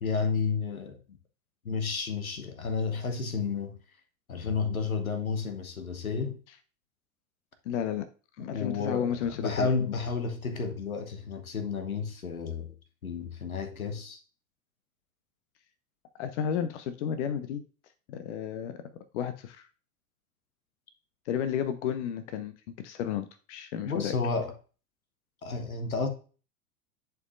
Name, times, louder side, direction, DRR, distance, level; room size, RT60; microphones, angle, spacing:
voice 1, 0.0-1.0 1.6-3.7 4.3-6.4 8.5-12.7 13.0-14.2 23.8-24.5 25.4-26.1, left 5 dB, 85° left, 1.1 m, -31 dB
voice 2, 7.7-8.1 8.4-9.7 16.2-17.6 18.1-18.8 19.1-19.7 21.3-24.1, left 8 dB, 55° left, 0.7 m, -32 dB
11.0 x 4.6 x 2.5 m
figure-of-eight pair, 85°, 41 cm